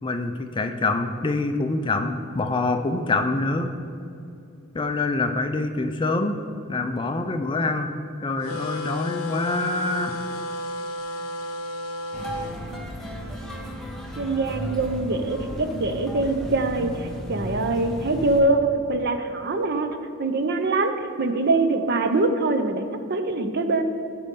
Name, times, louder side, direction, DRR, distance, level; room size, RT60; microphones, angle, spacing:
voice 1, 0.0-3.7 4.7-6.4 6.7-7.9 8.2-10.2, left 2 dB, 20° left, 6 dB, 0.4 m, -25 dB
sound 1, 8.4-12.6, left 2 dB, 70° left, 0.9 m, -33 dB
sound 2, 12.1-18.4, equal, ahead, 0.9 m, -34 dB
voice 2, 14.2-19.9 20.2-22.8 23.1-23.8, right 2 dB, 45° right, 7 dB, 0.6 m, -23 dB
14.5 x 5.1 x 3.7 m, 2.5 s
head